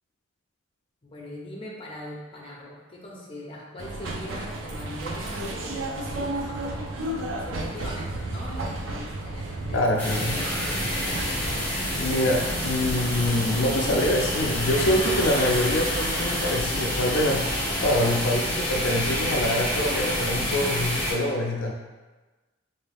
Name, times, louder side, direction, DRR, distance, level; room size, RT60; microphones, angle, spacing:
voice 1, 1.0-7.1 7.4-10.0 10.2-11.4, left 1 dB, 30° left, -3 dB, 0.8 m, -41 dB
sound 1, 3.8-15.3, right 2 dB, 85° right, 0.5 m, -34 dB
voice 2, 9.7-10.4 12.0-17.5 17.8-21.7, left 1 dB, 75° left, 0 dB, 0.4 m, -25 dB
crickets sprinklers, 10.0-21.1, left 1 dB, 10° left, 1.1 m, -28 dB
3.7 x 2.6 x 3.4 m, 1.2 s
head